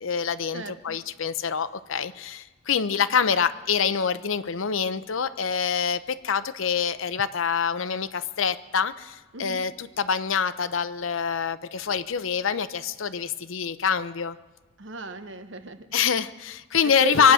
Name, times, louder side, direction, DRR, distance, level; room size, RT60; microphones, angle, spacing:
voice 1, 0.0-14.4 15.9-17.3, left 6 dB, 80° left, 13 dB, 0.7 m, -25 dB
voice 2, 0.5-1.0 9.3-9.6 14.8-15.9 16.8-17.3, right 5 dB, 65° right, 9 dB, 1.0 m, -34 dB
24.5 x 9.4 x 6.3 m, 1.2 s
head